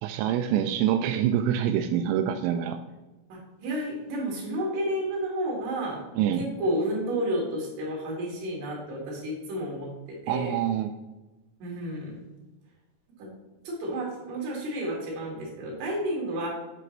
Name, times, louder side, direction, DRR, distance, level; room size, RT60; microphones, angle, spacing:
voice 1, 0.0-2.8 6.2-6.5 10.3-10.9, right 10 dB, 90° right, 7 dB, 3.2 m, -25 dB
voice 2, 3.3-6.0 6.3-9.9 10.2-10.5 11.6-12.2 13.2-13.3 13.6-16.5, right 1 dB, 60° right, -3 dB, 4.1 m, -31 dB
7.8 x 7.7 x 3.2 m, 1.1 s
omnidirectional pair, 5.8 m